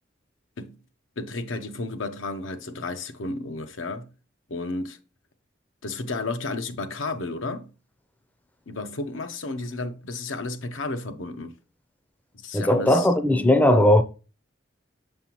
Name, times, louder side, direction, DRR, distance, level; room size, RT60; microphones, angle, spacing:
voice 1, 1.2-4.1 4.5-5.0 5.8-7.7 8.7-11.6 12.3-13.1, left 3 dB, 85° left, 0.8 m, -32 dB
voice 2, 12.5-14.0, left 1 dB, 10° left, 0.4 m, -18 dB
6.8 x 5.5 x 2.9 m
head